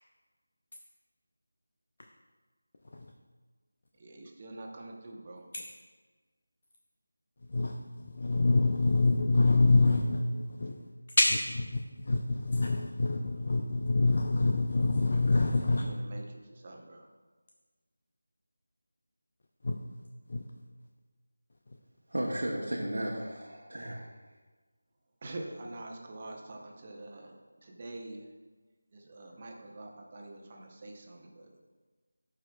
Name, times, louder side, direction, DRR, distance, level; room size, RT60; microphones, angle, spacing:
voice 1, 4.0-5.4 15.6-17.1 25.2-28.3 28.9-31.7, right 2 dB, 30° right, 1 dB, 0.8 m, -45 dB
voice 2, 8.0-10.7 11.3-11.8 12.1-15.9 19.6-19.7 20.3-20.4, left 3 dB, 45° left, 2 dB, 0.5 m, -26 dB
voice 3, 22.1-24.1, right 1 dB, 75° right, -3 dB, 1.0 m, -34 dB
11.5 x 4.9 x 2.2 m, 1.4 s
figure-of-eight pair, 170°, 0 cm